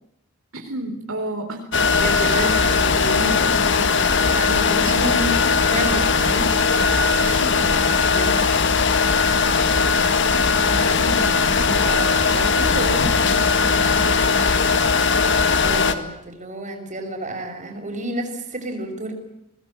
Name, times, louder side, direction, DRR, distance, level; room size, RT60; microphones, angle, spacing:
voice 1, 0.5-1.7 4.3-5.5 5.8-5.9 7.4-7.9 10.3-15.0, right 1 dB, 70° right, 3 dB, 4.1 m, -31 dB
sound 1, 1.7-15.9, left 5 dB, 55° left, 1.9 m, -19 dB
voice 2, 1.9-5.1 5.7-6.6 7.2-7.4 8.0-8.4 15.6-19.1, right 1 dB, 35° right, 4 dB, 6.0 m, -30 dB
24.0 x 19.5 x 9.1 m, 0.87 s
head